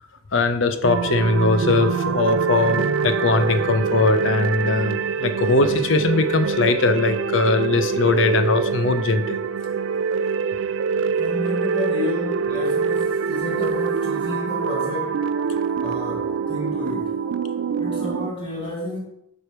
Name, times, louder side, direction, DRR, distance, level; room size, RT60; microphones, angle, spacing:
voice 1, 0.3-9.4, left 3 dB, 75° left, 0.7 m, -20 dB
sound 1, 0.8-18.3, right 6 dB, 75° right, 0.3 m, -24 dB
voice 2, 11.2-15.3 15.8-17.2 17.8-19.0, left 2 dB, 25° left, 1.5 m, -31 dB
4.9 x 4.9 x 5.8 m
head